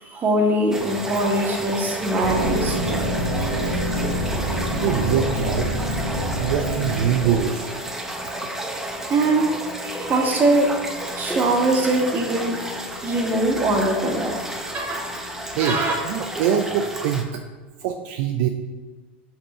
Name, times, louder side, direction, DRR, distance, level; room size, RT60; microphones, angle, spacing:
voice 1, 0.0-3.5 4.2-4.3 9.1-9.5 9.8-10.7 11.1-12.6 13.0-14.3 14.7-15.1 15.6-15.9, right 2 dB, 30° right, 1 dB, 1.5 m, -22 dB
sound 1, 0.7-17.2, right 1 dB, 5° right, 0.9 m, -31 dB
sound 2, 2.2-7.4, right 1 dB, 90° right, 1.6 m, -26 dB
voice 2, 4.7-5.7 6.4-7.8 15.5-17.4 17.8-18.5, right 8 dB, 60° right, 5 dB, 0.5 m, -23 dB
5.6 x 5.1 x 4.3 m, 1.3 s
hypercardioid pair, 95°, 6 cm